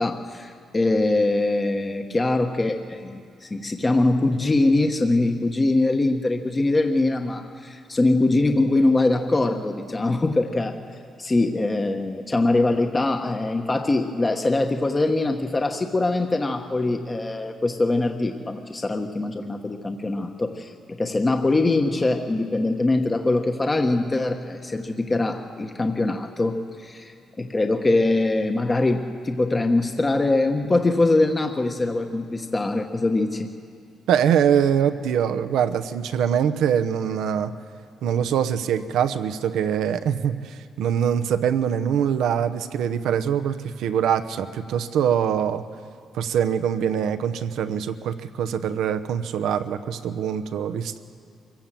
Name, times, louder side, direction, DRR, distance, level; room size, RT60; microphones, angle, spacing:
voice 1, 0.0-10.8 11.2-20.7 21.0-27.1 27.4-33.5, left 2 dB, 25° left, 5 dB, 1.1 m, -23 dB
voice 2, 34.1-37.5 38.0-45.6 46.1-51.0, right 8 dB, 80° right, 10 dB, 0.9 m, -23 dB
24.0 x 16.0 x 7.6 m, 2.4 s
cardioid pair, 90°, 0 cm